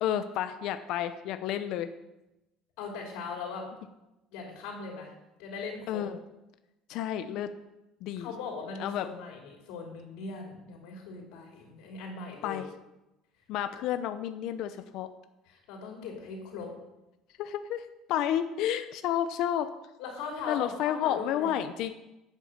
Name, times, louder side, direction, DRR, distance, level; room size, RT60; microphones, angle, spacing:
voice 1, 0.0-1.9 5.9-6.2 6.9-7.5 8.0-8.3 8.8-9.1 12.4-12.7 13.5-15.1 17.4-19.7 20.5-21.9, left 10 dB, 65° left, 10 dB, 0.7 m, -31 dB
voice 2, 2.8-3.6 4.3-5.1 5.4-6.0 8.2-12.6 15.5-16.7 20.0-21.6, left 4 dB, 85° left, 0 dB, 3.2 m, -39 dB
11.0 x 8.2 x 6.8 m, 0.96 s
cardioid pair, 140°, 0 cm